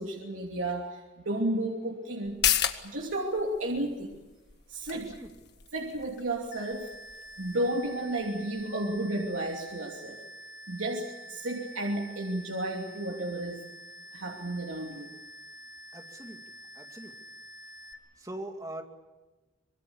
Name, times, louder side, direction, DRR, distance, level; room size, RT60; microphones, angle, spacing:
voice 1, 0.0-2.4 2.8-4.2 4.7-5.2 5.7-6.9 7.4-10.2 10.7-13.6 14.1-15.1, right 1 dB, 85° right, -1 dB, 3.0 m, -32 dB
sound 1, 2.2-9.4 9.7-9.8, left 10 dB, 55° left, 1.7 m, -35 dB
voice 2, 4.9-5.3 15.9-16.4 16.7-17.2 18.2-18.8, right 1 dB, 20° right, 4 dB, 2.4 m, -42 dB
sound 2, 6.5-17.9, right 1 dB, 40° left, 2.4 m, -47 dB
26.0 x 22.5 x 7.2 m, 1.2 s
head